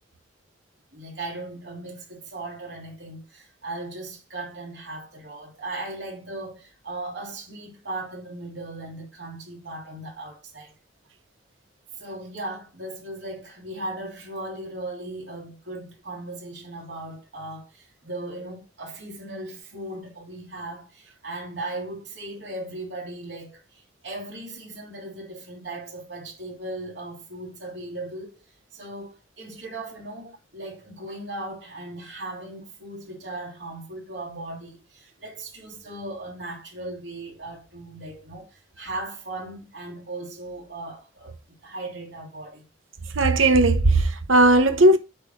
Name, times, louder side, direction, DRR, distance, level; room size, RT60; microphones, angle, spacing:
voice 1, 0.9-10.7 12.0-28.4 28.7-42.6, right 2 dB, 60° right, 3.2 m, -37 dB
voice 2, 43.1-45.0, right 2 dB, 85° right, 0.9 m, -17 dB
8.4 x 3.1 x 6.3 m
head